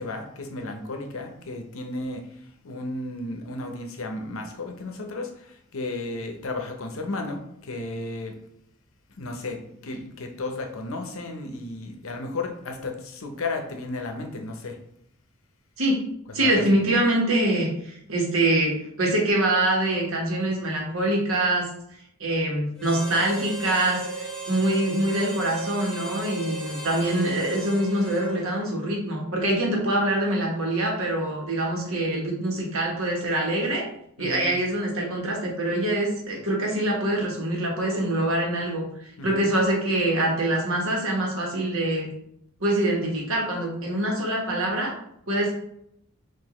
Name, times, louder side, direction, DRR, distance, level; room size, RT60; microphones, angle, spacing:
voice 1, 0.0-8.4 9.2-14.8 16.3-16.6 34.2-34.5 39.2-39.4, left 2 dB, 65° left, 4 dB, 0.7 m, -34 dB
voice 2, 16.3-21.7 22.2-33.8 34.2-38.9 39.2-42.1 42.6-44.9 45.3-45.5, right 1 dB, 70° right, -1 dB, 1.2 m, -24 dB
Harmonica, 22.8-28.7, right 1 dB, 5° left, 0.7 m, -36 dB
5.8 x 2.6 x 3.0 m, 0.74 s
head